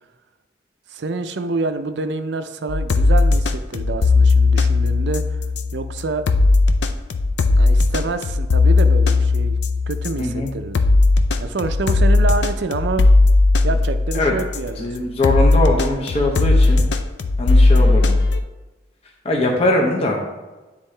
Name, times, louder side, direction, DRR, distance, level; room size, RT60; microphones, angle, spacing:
voice 1, 0.9-5.4 5.7-6.3 7.6-9.6 9.9-10.8 11.4-13.1 13.6-15.1, right 3 dB, 70° right, 9 dB, 0.4 m, -27 dB
sound 1, 2.7-14.7 15.2-18.4, left 3 dB, 70° left, 0.4 m, -17 dB
voice 2, 10.2-10.5 14.1-14.3 14.8-16.9 17.4-18.2 19.2-20.2, left 1 dB, 30° left, 0 dB, 0.7 m, -21 dB
9.4 x 3.6 x 3.2 m, 1.2 s
head